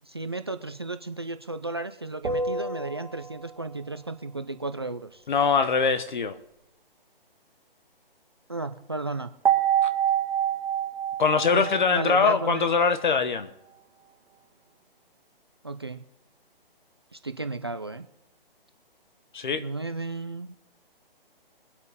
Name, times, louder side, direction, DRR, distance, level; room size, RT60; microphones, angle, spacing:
voice 1, 0.1-5.2 8.5-9.3 11.5-12.7 15.6-16.0 17.1-18.1 19.6-20.5, right 2 dB, 25° right, 0.4 m, -34 dB
sound 1, 2.2-3.8 9.4-12.8, right 8 dB, 60° right, 2.1 m, -27 dB
voice 2, 5.3-6.4 9.8-9.9 11.2-13.5 19.3-19.6, left 5 dB, 55° left, 1.2 m, -23 dB
23.5 x 8.2 x 3.6 m
hypercardioid pair, 170°, 30 cm